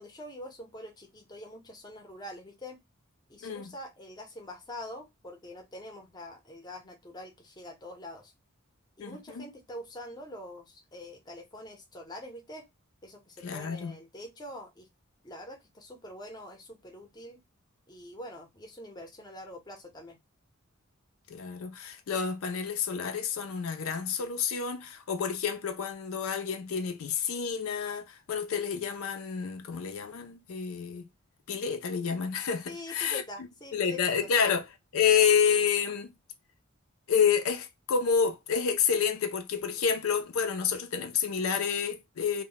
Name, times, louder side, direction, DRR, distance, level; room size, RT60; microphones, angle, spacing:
voice 1, 0.0-2.8 3.3-8.3 9.0-12.7 13.0-14.9 15.2-17.4 17.9-20.2 32.7-34.4, left 1 dB, 20° left, 0.6 m, -45 dB
voice 2, 9.0-9.4 13.4-14.0 21.3-31.1 31.5-33.2 33.7-34.7 34.9-36.1 37.1-42.4, left 7 dB, 80° left, 0.4 m, -29 dB
2.1 x 2.1 x 3.7 m
head